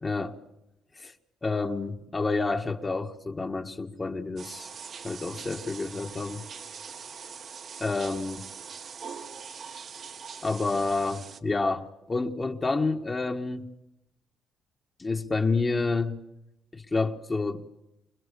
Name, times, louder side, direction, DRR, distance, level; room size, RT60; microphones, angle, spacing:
voice 1, 0.0-0.4 1.0-1.1 1.4-4.7 5.0-6.4 7.8-8.4 10.4-13.7 15.0-16.1 16.7-17.6, left 3 dB, 25° left, 1.6 m, -29 dB
sound 1, 4.4-11.4, right 6 dB, 55° right, 1.6 m, -42 dB
26.0 x 21.5 x 6.9 m
cardioid pair, 90°, 0 cm